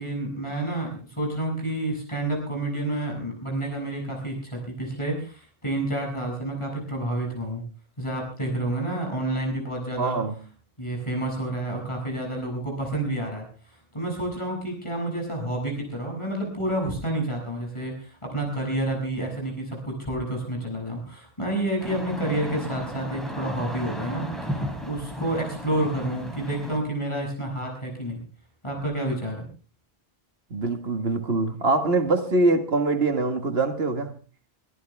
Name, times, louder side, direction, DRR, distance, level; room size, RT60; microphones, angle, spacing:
voice 1, 0.0-7.6 8.0-10.2 10.8-13.5 13.9-28.2 28.6-29.4, right 1 dB, 30° left, 7.0 m, -29 dB
voice 2, 10.0-10.3 30.5-34.1, right 2 dB, 80° right, 2.0 m, -23 dB
sound 1, 21.8-26.8, equal, ahead, 4.1 m, -34 dB
24.5 x 14.0 x 3.5 m
omnidirectional pair, 1.0 m